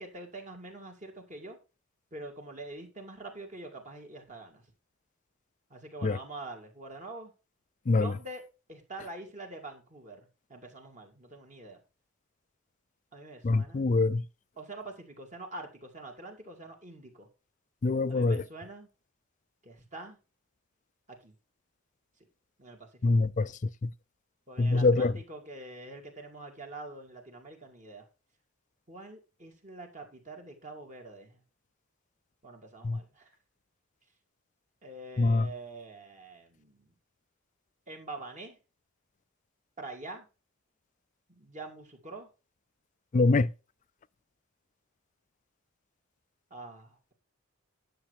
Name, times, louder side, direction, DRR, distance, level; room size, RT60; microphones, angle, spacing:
voice 1, 0.0-1.6 2.1-4.6 5.7-7.3 7.9-8.4 8.7-11.8 13.1-13.8 14.6-17.3 18.1-18.9 19.6-20.2 21.1-21.3 22.6-22.9 24.5-28.1 28.9-31.4 32.4-33.3 34.8-36.9 37.9-38.6 39.8-40.3 41.4-42.3 43.2-43.4 46.5-47.1, right 2 dB, 35° right, 2.4 m, -45 dB
voice 2, 13.4-14.2 17.8-18.4 23.0-23.5 23.8-23.9 24.6-25.1 32.8-33.0 35.2-35.5 43.1-43.5, left 3 dB, 35° left, 0.4 m, -24 dB
10.5 x 6.7 x 4.8 m
head